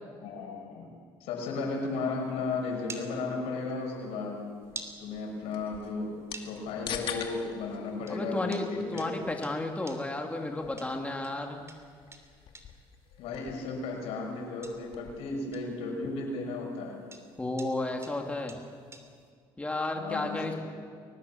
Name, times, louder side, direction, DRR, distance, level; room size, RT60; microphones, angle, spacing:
voice 1, 0.2-0.9 1.2-4.4 5.0-9.1 13.2-17.0 19.9-20.6, left 3 dB, 80° left, 1 dB, 6.1 m, -34 dB
sound 1, 1.4-19.3, right 3 dB, 30° right, 3.2 m, -52 dB
sound 2, 4.6-15.3, left 8 dB, 60° left, 2.5 m, -46 dB
voice 2, 8.1-11.6 17.4-18.6 19.6-20.5, left 2 dB, 15° left, 2 dB, 2.6 m, -33 dB
23.0 x 19.5 x 7.1 m, 2.1 s
cardioid pair, 95°, 10 cm